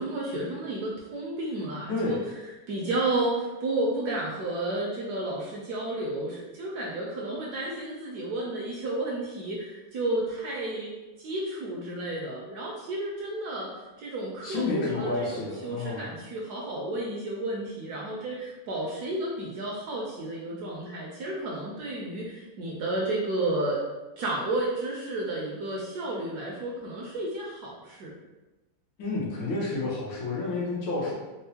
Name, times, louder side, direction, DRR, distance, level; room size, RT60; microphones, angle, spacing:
voice 1, 0.0-2.2 2.7-10.9 11.2-23.8 24.2-28.1, right 2 dB, 75° right, -3 dB, 1.0 m, -32 dB
voice 2, 1.9-2.3 14.4-16.1 29.0-31.1, left 2 dB, 75° left, -5 dB, 1.6 m, -30 dB
4.3 x 2.0 x 2.7 m, 1.1 s
omnidirectional pair, 2.1 m